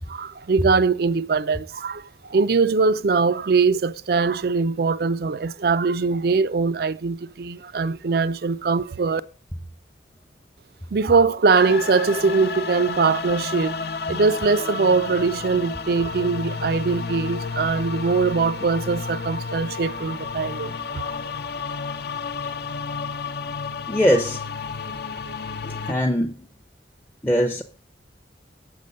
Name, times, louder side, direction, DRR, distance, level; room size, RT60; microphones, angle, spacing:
voice 1, 0.0-9.2 10.9-13.8 14.1-21.2, right 4 dB, 55° right, 0.4 m, -22 dB
sound 1, 11.5-25.9, left 5 dB, 55° left, 0.7 m, -31 dB
voice 2, 23.9-24.4 25.9-26.3 27.2-27.6, equal, 10° left, 0.6 m, -20 dB
8.4 x 6.7 x 5.3 m
head